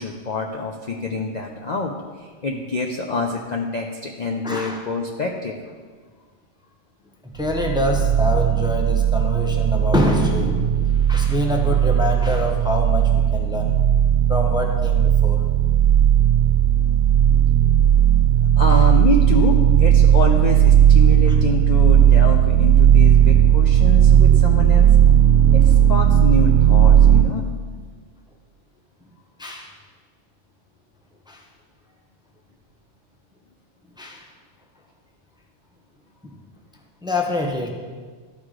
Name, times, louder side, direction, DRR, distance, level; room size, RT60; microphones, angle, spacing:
voice 1, 0.0-1.9 2.2-5.6 18.6-24.9 25.5-27.5, left 3 dB, 50° left, 1 dB, 0.5 m, -26 dB
voice 2, 4.4-4.8 7.3-13.7 14.3-15.4 21.3-21.4 29.4-29.7 31.3-31.4 34.0-34.3 36.2-36.4 37.0-37.7, left 2 dB, 5° right, 1 dB, 0.6 m, -25 dB
sound 1, 7.4-27.2, right 10 dB, 80° right, 1.0 m, -15 dB
12.5 x 4.8 x 3.7 m, 1.5 s
omnidirectional pair, 1.2 m